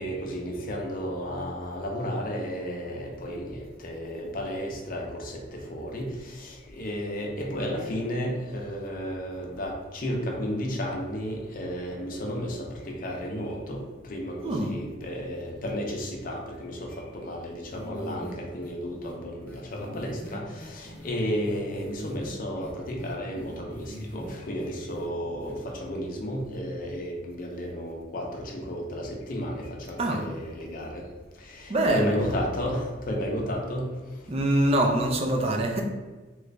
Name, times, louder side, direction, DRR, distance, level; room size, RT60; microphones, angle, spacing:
voice 1, 0.0-12.6 12.8-13.8 14.1-31.0 31.5-33.9, equal, 45° left, 0 dB, 0.6 m, -33 dB
sound 1, 17.7-18.3 18.6-18.7 19.0-19.1 19.5-21.1 21.4-22.3 22.6-24.3 24.6-25.1 25.4-25.5, left 1 dB, 10° left, 0.6 m, -42 dB
voice 2, 31.7-32.2 34.3-35.8, right 1 dB, 35° right, 2 dB, 0.4 m, -24 dB
3.0 x 2.5 x 3.2 m, 1.3 s
head